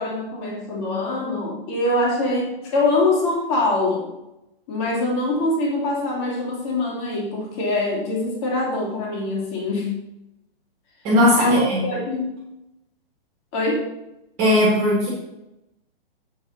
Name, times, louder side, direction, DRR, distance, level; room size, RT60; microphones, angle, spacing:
voice 1, 0.0-4.1 4.7-10.0 11.4-12.4 13.5-13.9, left 2 dB, 30° left, -2 dB, 2.7 m, -23 dB
voice 2, 11.0-11.8 14.4-15.1, left 1 dB, 25° right, -3 dB, 2.1 m, -18 dB
8.0 x 6.3 x 5.7 m, 0.91 s
hypercardioid pair, 165°, 30 cm